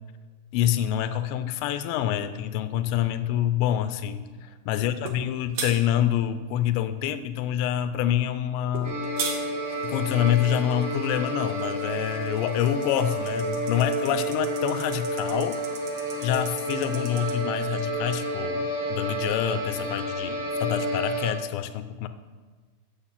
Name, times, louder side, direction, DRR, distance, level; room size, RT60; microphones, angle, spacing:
voice 1, 0.5-4.3 4.7-9.0 9.8-15.6 16.2-22.1, left 11 dB, 90° left, 11 dB, 2.9 m, -26 dB
sound 1, 5.0-5.2 5.5-5.7 8.7-9.4, right 6 dB, 90° right, 1.6 m, -30 dB
sound 2, 8.8-21.3, right 1 dB, 35° right, 3.7 m, -30 dB
sound 3, 9.6-17.4, right 7 dB, 75° right, 2.2 m, -47 dB
8.8 x 7.1 x 7.3 m, 1.4 s
omnidirectional pair, 5.0 m